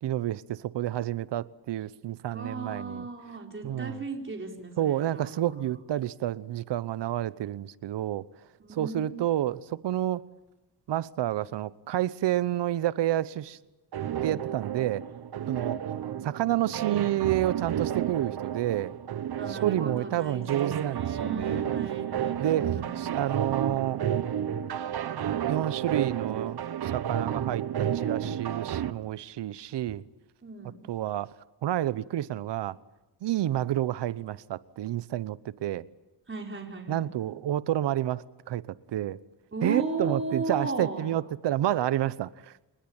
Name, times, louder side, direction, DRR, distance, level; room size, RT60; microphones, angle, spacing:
voice 1, 0.0-3.1 3.6-4.0 4.8-8.2 8.8-10.2 10.9-13.6 14.2-15.0 15.5-15.8 16.2-18.9 19.5-21.6 22.4-24.0 25.5-30.0 30.9-31.3 31.6-32.8 33.2-35.9 36.9-39.2 39.6-42.5, right 12 dB, 80° right, 1.0 m, -29 dB
voice 2, 2.3-5.6 8.6-9.2 15.4-15.8 19.4-23.2 30.4-30.9 36.3-37.0 39.5-41.1, right 3 dB, 30° right, 4.6 m, -36 dB
sound 1, 13.9-28.9, right 10 dB, 65° right, 1.2 m, -31 dB
28.5 x 20.5 x 8.9 m
cardioid pair, 80°, 41 cm